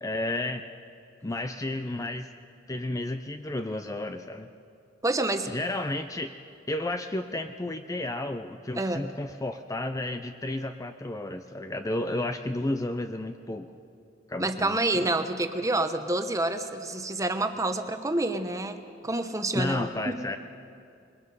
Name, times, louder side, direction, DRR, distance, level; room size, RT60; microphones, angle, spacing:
voice 1, 0.0-0.7 1.2-2.3 2.7-4.5 5.5-6.4 6.7-13.7 14.3-15.1 19.5-20.4, left 1 dB, 15° left, 8 dB, 0.5 m, -32 dB
voice 2, 5.0-5.5 8.8-9.1 14.4-19.8 20.1-20.2, right 2 dB, 15° right, 8 dB, 1.0 m, -28 dB
27.0 x 21.5 x 5.4 m, 2.4 s
head